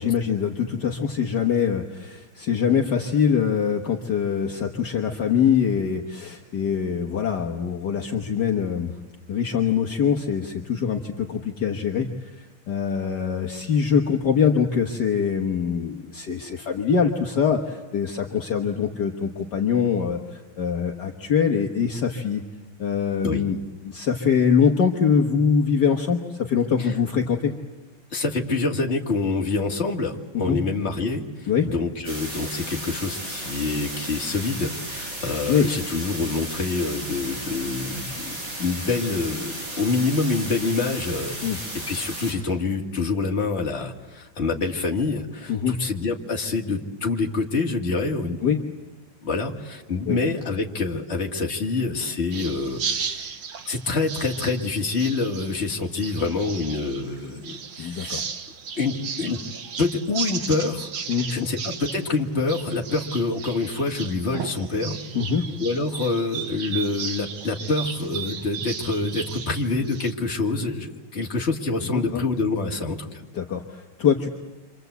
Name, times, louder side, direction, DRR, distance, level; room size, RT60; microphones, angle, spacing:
voice 1, 0.0-8.9 9.3-12.1 12.4-22.4 22.8-23.6 23.8-27.5 30.3-30.6 31.5-31.7 35.5-35.7 41.4-41.6 45.5-45.8 48.4-48.6 50.1-50.2 57.8-58.2 61.1-61.5 65.1-65.4 71.9-72.2 73.3-74.3, left 7 dB, 60° left, 3 dB, 1.8 m, -23 dB
voice 2, 28.1-48.5 49.2-53.4 53.7-58.3 58.8-59.4 59.8-60.9 61.3-65.0 65.6-73.2, left 3 dB, 35° left, 2 dB, 2.3 m, -26 dB
sound 1, 32.0-42.3, right 1 dB, 70° right, 7.5 m, -34 dB
sound 2, 52.3-70.1, right 6 dB, 85° right, 2.3 m, -35 dB
29.0 x 25.5 x 8.1 m, 1.2 s
omnidirectional pair, 2.2 m